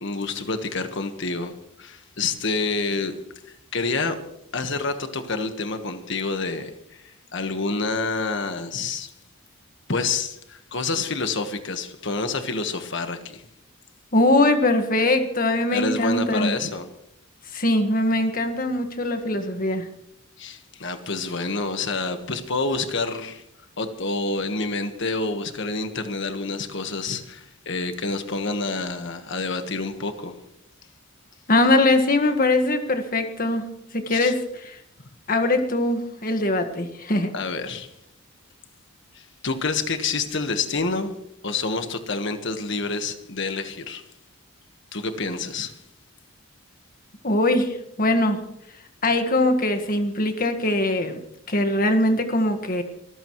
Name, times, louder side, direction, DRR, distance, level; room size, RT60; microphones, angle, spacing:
voice 1, 0.0-1.5 1.8-3.2 3.7-4.2 4.5-9.1 9.9-13.4 15.7-16.9 20.4-23.4 23.8-30.3 34.1-34.3 37.3-37.9 39.1-41.2 41.4-44.0 44.9-45.7, left 3 dB, 60° left, 1.4 m, -28 dB
voice 2, 14.1-16.5 17.5-19.9 31.5-33.6 33.9-34.8 35.3-37.3 47.2-48.4 49.0-52.8, left 2 dB, 40° left, 1.6 m, -22 dB
24.5 x 14.5 x 3.1 m
head